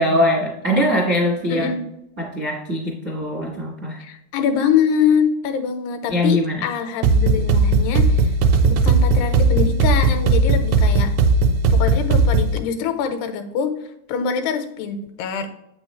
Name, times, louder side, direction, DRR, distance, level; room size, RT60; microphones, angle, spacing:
voice 1, 0.0-1.7 2.2-4.0 6.1-6.6, left 1 dB, 60° right, -3 dB, 0.8 m, -21 dB
voice 2, 1.5-1.8 4.0-8.3 8.6-11.1 11.7-13.7 14.1-15.5, left 7 dB, 85° left, 7 dB, 2.8 m, -24 dB
sound 1, 7.0-12.6, right 3 dB, 80° right, 2.3 m, -17 dB
8.2 x 6.1 x 3.1 m, 0.83 s
omnidirectional pair, 4.7 m